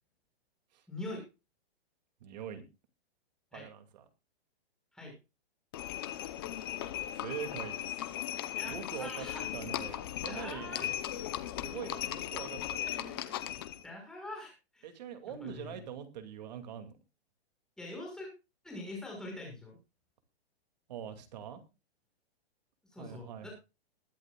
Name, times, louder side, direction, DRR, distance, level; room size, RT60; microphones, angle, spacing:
voice 1, 0.9-1.2 3.5-3.7 4.9-5.2 8.5-9.5 10.3-10.9 12.8-13.5 13.8-14.9 15.3-15.9 17.8-18.3 18.6-19.8 22.8-23.5, left 2 dB, ahead, -1 dB, 5.8 m, -44 dB
voice 2, 2.2-2.6 3.5-4.0 7.2-8.1 8.6-9.3 9.5-10.9 11.6-12.9 14.8-16.9 20.9-21.6 23.0-23.5, right 8 dB, 40° right, 7 dB, 2.4 m, -43 dB
Livestock farm animals working animals, 5.7-13.8, left 12 dB, 20° left, 0.7 m, -37 dB
21.5 x 11.0 x 2.3 m, 0.29 s
hypercardioid pair, 175°, 32 cm